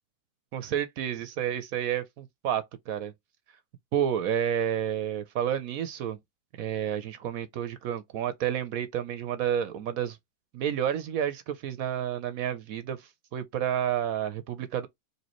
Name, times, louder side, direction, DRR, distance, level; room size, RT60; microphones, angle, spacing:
voice 1, 0.5-3.1 3.9-6.2 6.6-10.2 10.5-14.9, right 9 dB, 70° right, 0.9 m, -30 dB
4.2 x 2.7 x 2.9 m
omnidirectional pair, 1.8 m